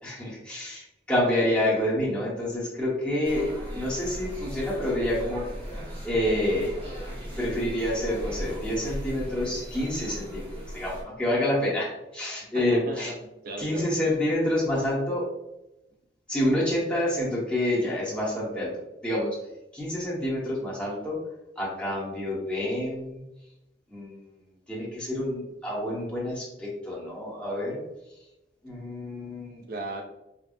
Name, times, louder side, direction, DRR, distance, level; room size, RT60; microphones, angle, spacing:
voice 1, 0.0-5.5 6.0-6.7 7.4-10.5 10.7-13.1 13.6-15.3 16.3-19.4 19.7-21.2 21.6-23.2 23.9-24.2 24.7-27.8 28.6-29.6, left 1 dB, 5° left, -6 dB, 1.2 m, -28 dB
sound 1, 3.2-11.0, equal, 30° right, 1.2 m, -37 dB
voice 2, 12.5-14.2 29.7-30.0, right 2 dB, 55° right, 2 dB, 0.5 m, -36 dB
5.3 x 2.4 x 2.6 m, 0.92 s
head